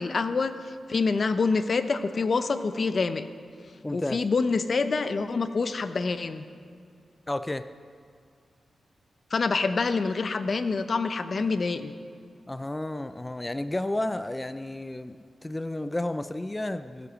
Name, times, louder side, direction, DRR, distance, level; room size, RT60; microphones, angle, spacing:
voice 1, 0.0-3.3 3.9-6.4 9.3-11.9, left 4 dB, 50° left, 11 dB, 0.7 m, -26 dB
voice 2, 3.8-4.2 7.3-7.7 12.5-15.2 15.4-17.1, left 1 dB, 20° left, 12 dB, 0.4 m, -31 dB
16.0 x 7.9 x 6.2 m, 2.3 s
cardioid pair, 70°, 0 cm